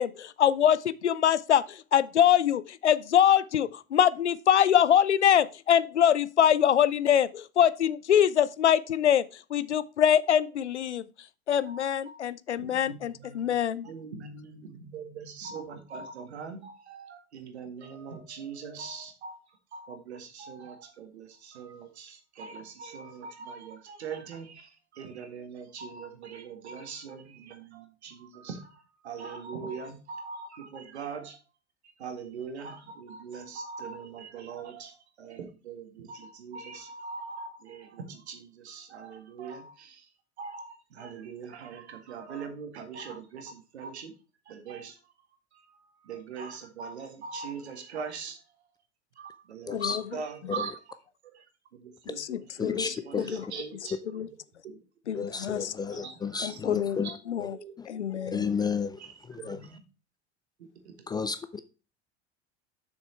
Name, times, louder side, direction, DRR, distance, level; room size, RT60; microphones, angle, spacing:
voice 1, 0.0-11.1 11.5-13.9 49.7-50.0 52.2-53.4 54.1-54.3 55.1-55.7 56.4-57.0 57.3-57.5 57.9-58.5, left 9 dB, 80° left, 0.5 m, -24 dB
voice 2, 11.7-12.2 12.6-13.5 13.8-31.4 32.0-40.1 40.4-44.1 44.5-45.0 45.5-48.4 49.2-50.8 51.3-51.5 51.7-52.5 52.9-54.0 54.6-54.8 55.9-56.6 57.0-57.2 57.6-57.7 58.1-58.3 59.0-59.8 60.6-60.9, right 5 dB, 70° right, 1.9 m, -42 dB
voice 3, 49.7-50.0 50.6-50.7 52.6-53.5 55.1-57.1 57.4-57.5 57.8-57.9 58.3-59.6 61.1-61.6, left 5 dB, 10° left, 0.4 m, -32 dB
7.2 x 6.4 x 4.4 m
figure-of-eight pair, 75°, 34 cm